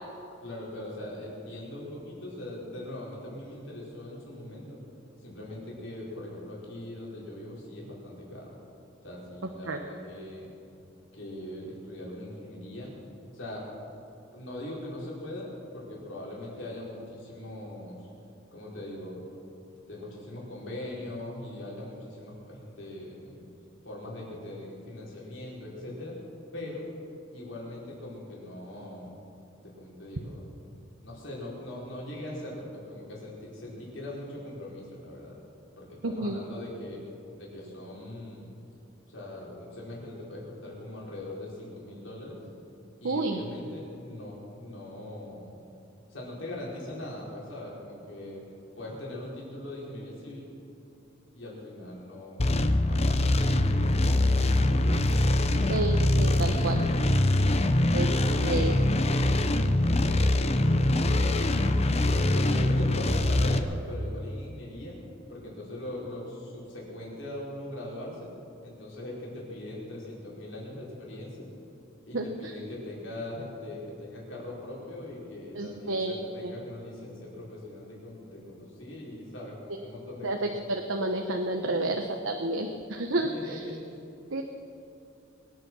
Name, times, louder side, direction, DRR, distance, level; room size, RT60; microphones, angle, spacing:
voice 1, 0.4-4.8 5.2-8.5 9.0-10.5 11.1-12.9 13.3-13.7 14.3-18.1 18.5-19.2 19.9-23.4 23.8-26.2 26.5-26.8 27.3-29.2 29.6-30.4 31.0-35.3 35.8-37.0 37.4-38.4 39.1-42.4 43.0-45.5 46.1-48.4 48.8-50.4 51.3-52.4 52.9-53.4 53.8-54.3 54.8-54.9 58.0-61.3 61.8-65.0 65.3-68.3 68.6-71.5 72.0-80.4 81.7-81.9 83.1-83.9, left 1 dB, 75° left, -5 dB, 4.8 m, -41 dB
voice 2, 36.0-36.4 43.0-43.4 55.7-56.8 57.9-58.1 58.4-58.7 72.1-72.2 75.6-76.2 76.4-76.5 80.2-83.5 84.3-84.4, right 2 dB, 80° right, 4 dB, 1.0 m, -30 dB
sound 1, 52.4-63.6, left 1 dB, 35° left, 0.8 m, -23 dB
23.0 x 9.8 x 6.2 m, 2.7 s
head